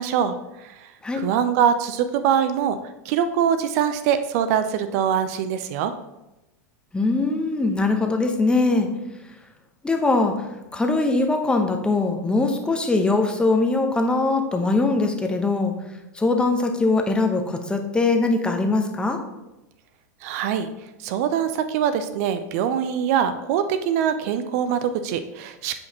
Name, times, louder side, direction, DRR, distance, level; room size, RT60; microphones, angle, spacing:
voice 1, 0.0-2.8 3.0-5.9 20.2-20.7 21.0-25.8, right 8 dB, 55° right, 10 dB, 0.5 m, -23 dB
voice 2, 6.9-8.9 9.8-10.5 10.7-15.7 16.1-19.2, left 3 dB, 10° left, 4 dB, 0.9 m, -21 dB
8.1 x 5.2 x 2.9 m, 0.96 s
hypercardioid pair, 100°, 10 cm